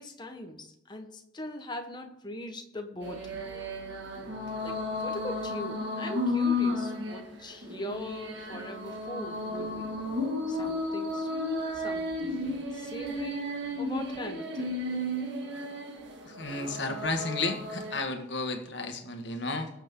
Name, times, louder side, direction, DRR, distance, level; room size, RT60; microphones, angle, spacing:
voice 1, 0.0-3.4 4.6-9.9 10.5-13.5 13.8-14.7, left 1 dB, 20° left, 4 dB, 1.2 m, -41 dB
sound 1, 3.0-18.0, left 2 dB, 65° right, 2.0 m, -33 dB
voice 2, 16.3-19.7, left 3 dB, 65° left, 5 dB, 1.6 m, -33 dB
19.5 x 7.6 x 3.8 m, 0.82 s
head